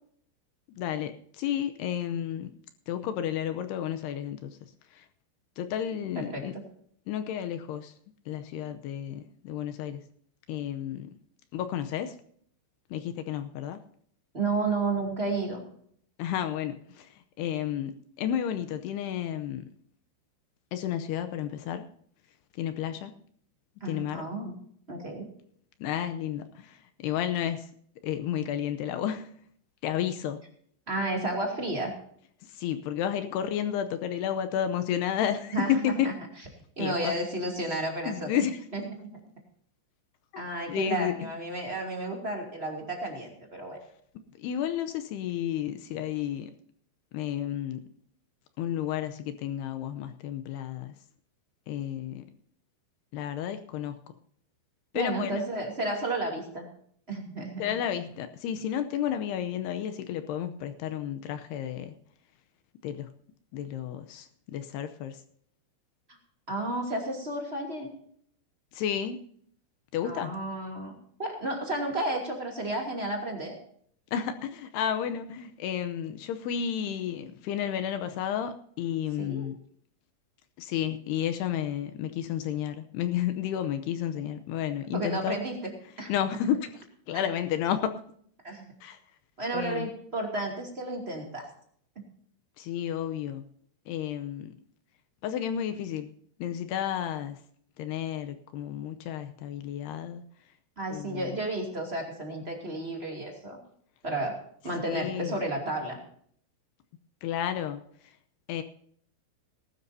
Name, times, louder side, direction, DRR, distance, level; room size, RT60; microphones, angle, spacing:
voice 1, 0.7-2.6 2.9-5.1 5.6-6.5 7.1-7.9 8.3-10.0 10.5-11.1 11.5-12.2 12.9-13.8 16.2-19.7 20.7-21.9 22.5-23.1 23.9-24.2 25.8-27.7 28.0-29.3 29.8-30.4 32.5-36.1 36.8-37.1 38.1-38.7 40.3-40.4 40.7-41.1 44.4-46.5 47.1-47.8 48.6-50.9 51.7-52.2 53.1-54.0 54.9-55.4 57.6-62.0 62.8-63.1 63.5-65.2 68.7-69.2 69.9-70.3 74.1-79.6 80.6-85.4 86.1-88.0 88.8-89.0 89.5-89.9 92.6-93.5 93.9-94.5 95.2-96.1 96.4-97.4 97.8-100.2 100.9-101.4 104.9-105.4 107.2-108.2 108.5-108.6, left 10 dB, 75° left, 9 dB, 2.5 m, -32 dB
voice 2, 14.3-15.6 23.8-24.5 24.9-25.3 30.9-31.9 35.5-36.1 36.8-38.5 38.7-38.8 40.4-43.8 54.9-56.7 57.1-57.6 66.5-67.9 70.0-73.5 79.2-79.5 84.9-85.7 86.0-86.1 87.1-87.2 88.4-88.7 89.4-91.5 100.8-103.6 104.0-104.4 104.6-106.0, right 2 dB, 20° right, 0 dB, 1.8 m, -32 dB
19.5 x 12.5 x 2.7 m, 0.63 s
omnidirectional pair, 5.3 m